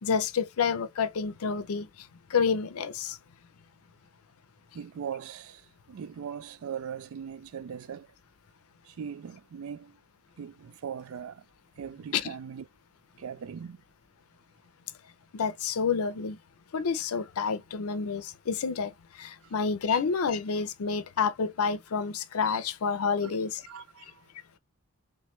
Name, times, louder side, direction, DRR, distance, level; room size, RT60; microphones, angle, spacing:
voice 1, 0.0-3.2 12.1-12.3 15.3-16.4 16.7-23.6, left 5 dB, 80° left, 0.5 m, -29 dB
voice 2, 4.7-8.1 8.8-10.0 10.4-11.4 11.8-12.6 13.2-13.8 19.4-19.5 23.2-24.2, right 7 dB, 70° right, 0.3 m, -40 dB
3.3 x 3.1 x 3.1 m
head